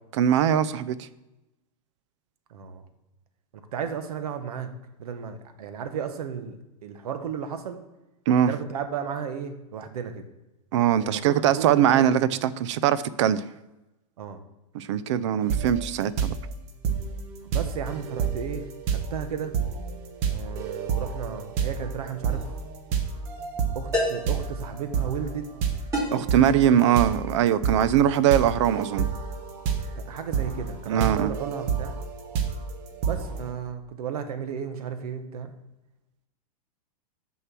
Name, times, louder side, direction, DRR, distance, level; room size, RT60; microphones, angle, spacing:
voice 1, 0.2-1.1 8.3-8.5 10.7-13.4 14.7-16.3 26.1-29.1 30.9-31.3, right 10 dB, 50° right, 16 dB, 0.4 m, -22 dB
voice 2, 2.5-2.8 3.7-4.7 5.0-6.6 6.8-7.8 8.4-10.2 11.0-12.3 14.2-14.4 17.5-19.5 20.3-22.4 23.7-25.5 28.0-28.1 30.0-32.0 33.1-35.5, right 7 dB, 80° right, 8 dB, 0.9 m, -34 dB
sound 1, 15.5-15.9 16.2-33.5, right 6 dB, 35° right, 1.0 m, -30 dB
sound 2, 22.3-22.5 23.9-24.4 25.9-26.3, equal, 15° right, 2.8 m, -27 dB
6.6 x 4.6 x 6.0 m, 0.99 s
supercardioid pair, 160°, 19 cm